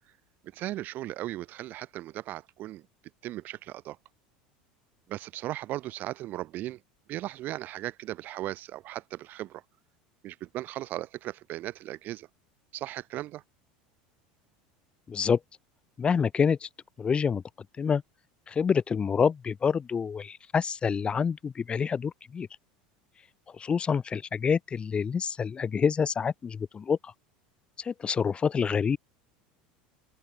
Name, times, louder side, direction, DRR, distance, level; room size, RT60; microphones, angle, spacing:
voice 1, 0.5-2.8 3.2-4.0 5.1-6.8 7.1-9.6 10.2-12.3 12.7-13.4, right 15 dB, 50° right, 2.9 m, -37 dB
voice 2, 15.1-15.4 16.0-16.7 17.0-17.4 17.8-18.0 18.5-22.5 23.5-27.1 27.8-29.0, left 6 dB, 25° left, 1.8 m, -27 dB
open air
supercardioid pair, 105°, 4 cm